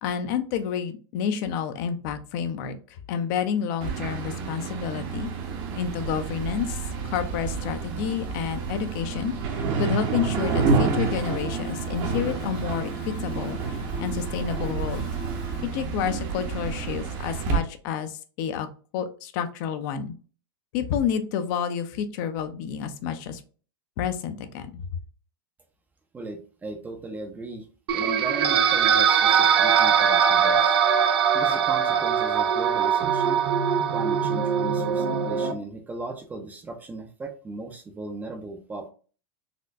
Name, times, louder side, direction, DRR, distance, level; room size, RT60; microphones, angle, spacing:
voice 1, 0.0-5.3 5.8-15.0 15.6-18.7 18.9-20.1 20.7-23.4 24.0-24.9, left 8 dB, 50° left, 9 dB, 0.6 m, -29 dB
sound 1, 3.8-17.6, right 5 dB, 45° right, 0.9 m, -29 dB
Alarm, 8.2-16.8, right 1 dB, 70° left, 1.6 m, -42 dB
voice 2, 26.1-27.7 27.9-30.8 31.3-33.4 33.9-38.9, right 2 dB, 15° right, 6 dB, 0.5 m, -37 dB
sound 2, 27.9-35.5, right 7 dB, 80° right, 0.5 m, -21 dB
4.1 x 2.2 x 2.6 m, 0.38 s
supercardioid pair, 135°, 13 cm